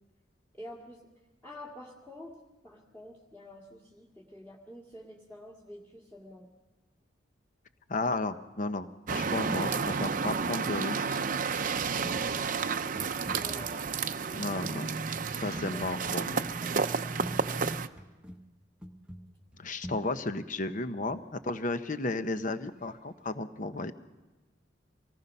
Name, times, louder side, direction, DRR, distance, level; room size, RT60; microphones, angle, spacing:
voice 1, 0.5-1.0 1.4-2.4 2.6-6.5 13.3-13.7 15.7-16.2 16.6-17.5, left 1 dB, 10° left, -3 dB, 2.1 m, -48 dB
voice 2, 7.9-11.2 14.3-14.9 15.3-16.4 19.6-23.9, left 2 dB, 45° left, 10 dB, 0.9 m, -33 dB
sound 1, 9.1-17.9, right 5 dB, 45° right, 0.6 m, -31 dB
sound 2, 11.4-11.7 12.0-12.3 12.6-13.9 14.5-18.4 18.8-21.5 22.8-22.9, equal, 5° right, 1.0 m, -47 dB
25.5 x 19.0 x 5.5 m, 1.2 s
head